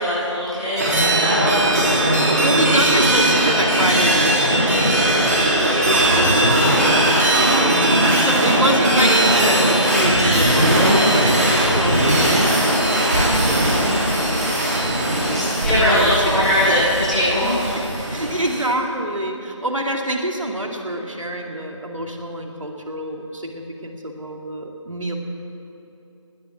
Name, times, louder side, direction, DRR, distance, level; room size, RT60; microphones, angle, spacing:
voice 1, 0.0-1.6 15.3-17.7, left 1 dB, ahead, -16 dB, 1.8 m, -21 dB
sound 1, 0.8-18.7, right 1 dB, 30° right, 3.5 m, -18 dB
voice 2, 2.4-13.6 14.3-17.0 18.0-25.2, right 1 dB, 80° right, 2 dB, 2.4 m, -26 dB
19.0 x 7.0 x 9.3 m, 2.8 s
figure-of-eight pair, 170°, 16 cm